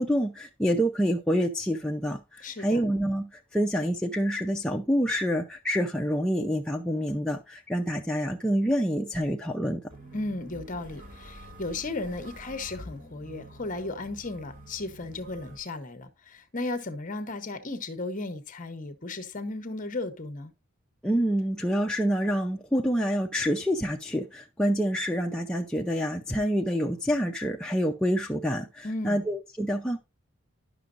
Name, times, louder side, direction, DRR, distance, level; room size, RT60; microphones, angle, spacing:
voice 1, 0.0-9.8 21.0-30.0, equal, 5° left, 0.4 m, -27 dB
voice 2, 2.4-2.8 10.1-20.5 28.8-29.2, left 2 dB, 35° left, 0.9 m, -35 dB
sound 1, 9.9-15.6, equal, 35° right, 2.0 m, -47 dB
11.0 x 6.0 x 2.5 m
head